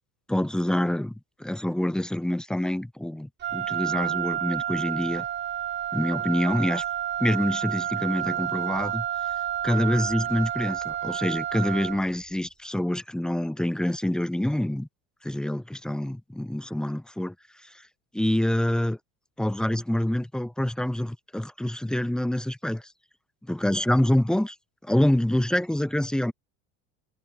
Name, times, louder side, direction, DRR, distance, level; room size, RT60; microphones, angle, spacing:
voice 1, 0.3-1.1 1.4-5.3 5.9-6.8 7.2-9.1 9.6-14.9 15.2-17.3 17.6-17.7 18.1-19.0 19.4-22.8 23.5-24.6 24.8-26.3, left 1 dB, ahead, 0.5 m, -26 dB
Wind instrument woodwind instrument, 3.4-12.1, right 10 dB, 35° right, 5.0 m, -30 dB
cardioid pair, 145°, 33 cm